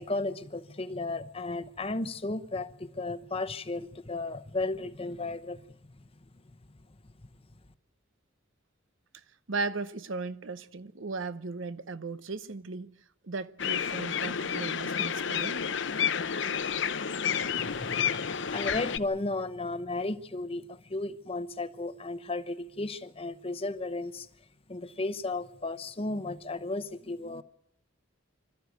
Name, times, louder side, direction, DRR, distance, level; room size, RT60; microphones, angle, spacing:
voice 1, 0.0-5.6 17.6-24.3 24.7-27.4, left 2 dB, 30° left, 0.9 m, -34 dB
voice 2, 9.1-12.9 13.2-15.7, right 3 dB, 70° right, 0.8 m, -37 dB
sound 1, 13.6-19.0, left 7 dB, 60° left, 0.8 m, -30 dB
26.0 x 13.5 x 9.3 m
head